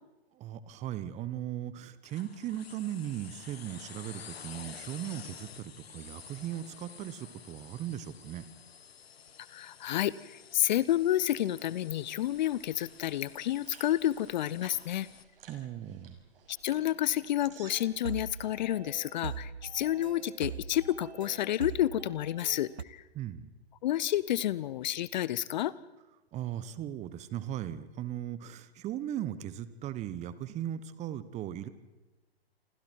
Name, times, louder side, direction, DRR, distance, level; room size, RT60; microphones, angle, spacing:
voice 1, 0.4-8.4 15.5-16.2 23.1-23.5 26.3-31.7, right 11 dB, 20° right, 15 dB, 1.2 m, -38 dB
sound 1, 2.0-15.2, left 7 dB, 70° left, 1.3 m, -51 dB
voice 2, 9.5-15.1 16.5-23.0 23.8-25.7, left 13 dB, 45° left, 20 dB, 0.8 m, -30 dB
sound 2, 11.4-18.5, right 6 dB, 60° right, 5.8 m, -57 dB
sound 3, 17.7-22.8, right 6 dB, 85° right, 1.0 m, -42 dB
28.0 x 26.0 x 4.6 m, 1.1 s
figure-of-eight pair, 120°, 31 cm